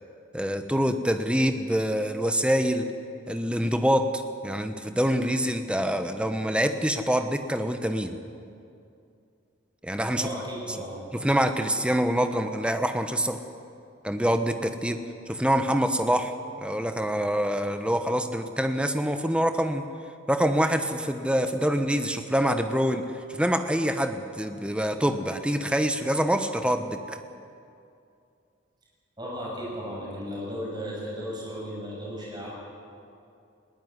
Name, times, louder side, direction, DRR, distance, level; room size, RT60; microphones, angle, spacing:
voice 1, 0.3-2.9 3.3-8.2 9.8-10.3 11.1-13.4 14.0-19.9 20.3-27.2, equal, 5° right, 8 dB, 1.0 m, -25 dB
voice 2, 10.1-11.0 29.2-32.5, equal, 20° right, -4 dB, 6.8 m, -35 dB
21.0 x 16.5 x 9.7 m, 2.5 s
head